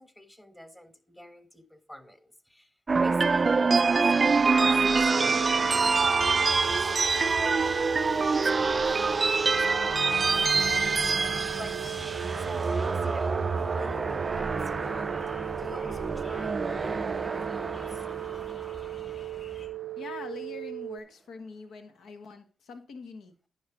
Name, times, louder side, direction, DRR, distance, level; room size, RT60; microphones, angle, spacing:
voice 1, 0.0-7.3 8.0-11.9 12.4-15.1 15.6-18.1, equal, 10° left, 10 dB, 1.5 m, -47 dB
sound 1, 2.9-19.1, right 4 dB, 40° right, 0.3 m, -26 dB
sound 2, 5.1-21.0, right 16 dB, 90° right, 0.6 m, -38 dB
sound 3, 5.8-19.7, left 1 dB, 60° left, 5.5 m, -48 dB
voice 2, 20.0-23.5, left 4 dB, 75° left, 6 dB, 1.6 m, -43 dB
10.5 x 5.3 x 4.9 m, 0.37 s
supercardioid pair, 50°, 0 cm